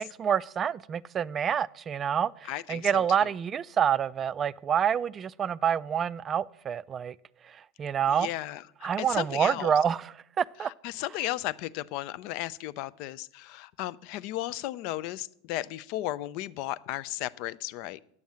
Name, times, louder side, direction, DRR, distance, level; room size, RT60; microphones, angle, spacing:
voice 1, 0.0-7.2 7.8-8.3 8.8-10.7, right 8 dB, 30° right, 0.3 m, -27 dB
voice 2, 2.5-3.3 8.1-9.7 10.8-18.0, left 15 dB, 55° left, 0.4 m, -35 dB
9.6 x 7.1 x 7.5 m
hypercardioid pair, 85°, 0 cm